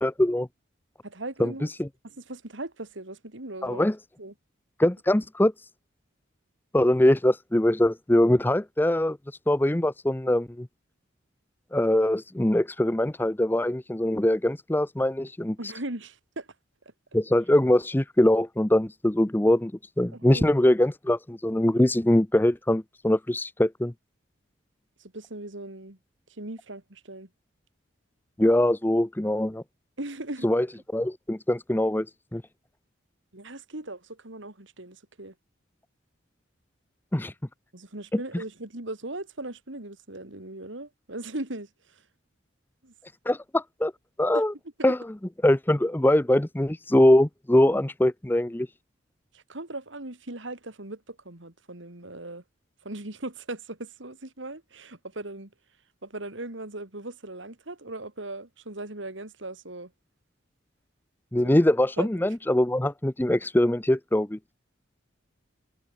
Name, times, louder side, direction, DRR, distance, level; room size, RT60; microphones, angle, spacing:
voice 1, 0.0-0.5 1.4-1.5 1.8-1.9 3.6-4.0 4.8-5.5 6.7-9.2 9.5-10.7 11.7-15.6 17.1-19.7 20.0-23.9 28.4-29.6 30.4-30.7 30.9-32.1 32.3-32.4 37.1-37.3 43.3-43.9 44.2-44.5 44.8-45.0 45.4-48.7 61.3-64.4, left 1 dB, 10° left, 0.5 m, -22 dB
voice 2, 1.0-1.7 2.0-3.8 4.2-4.3 15.6-16.5 20.1-20.5 25.0-26.0 26.4-27.3 30.0-30.5 33.3-35.3 37.7-42.0 42.8-42.9 44.3-44.4 44.8-44.9 49.3-52.4 52.8-55.5 56.0-59.9 61.4-61.5 62.0-62.1, right 2 dB, 70° right, 2.8 m, -38 dB
head